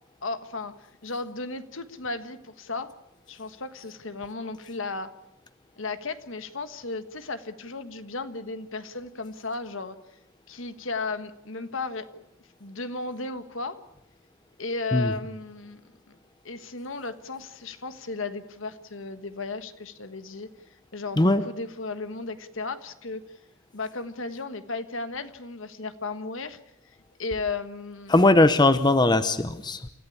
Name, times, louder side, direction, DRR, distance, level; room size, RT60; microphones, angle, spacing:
voice 1, 0.2-2.9 3.3-5.1 5.8-10.0 10.5-12.2 12.6-13.8 14.6-16.1 16.4-20.5 20.9-23.2 23.7-26.6 27.2-28.1, left 3 dB, 65° left, 11 dB, 1.4 m, -35 dB
voice 2, 28.1-29.9, left 2 dB, 20° left, 11 dB, 0.8 m, -19 dB
28.0 x 14.5 x 8.5 m, 0.85 s
head